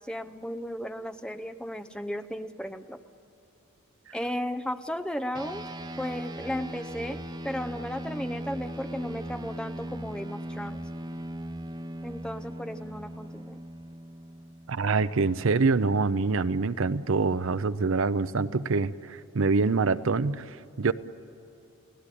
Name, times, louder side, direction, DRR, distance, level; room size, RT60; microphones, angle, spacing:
voice 1, 0.0-3.0 4.1-5.7 6.0-10.8 12.0-13.6, equal, 5° left, 8 dB, 0.7 m, -35 dB
sound 1, 5.3-15.1, right 1 dB, 20° right, 1.0 m, -39 dB
voice 2, 14.7-20.9, right 4 dB, 60° right, 14 dB, 0.6 m, -25 dB
30.0 x 17.5 x 10.0 m, 2.7 s
head